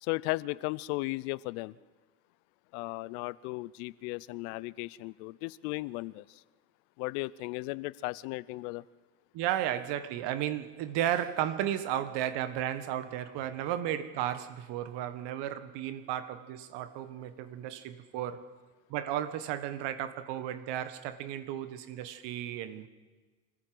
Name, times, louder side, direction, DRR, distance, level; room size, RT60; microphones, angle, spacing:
voice 1, 0.0-1.8 2.7-6.4 7.0-8.8, left 22 dB, 75° left, 20 dB, 0.7 m, -36 dB
voice 2, 9.3-18.5 18.9-22.9, right 11 dB, 65° right, 12 dB, 1.6 m, -34 dB
25.0 x 15.0 x 7.8 m, 1.3 s
hypercardioid pair, 75°, 45 cm